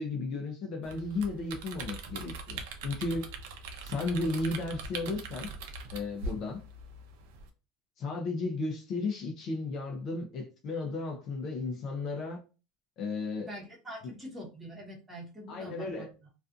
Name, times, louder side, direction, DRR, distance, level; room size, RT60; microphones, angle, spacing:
voice 1, 0.0-3.3 3.8-5.5 5.9-6.6 8.0-12.4 13.0-13.5 15.5-16.1, left 3 dB, 40° left, 0.5 m, -34 dB
sound 1, 0.8-7.5, right 3 dB, 75° right, 0.5 m, -42 dB
voice 2, 13.4-16.1, equal, 10° right, 1.0 m, -44 dB
2.5 x 2.4 x 2.4 m
supercardioid pair, 150°, 0 cm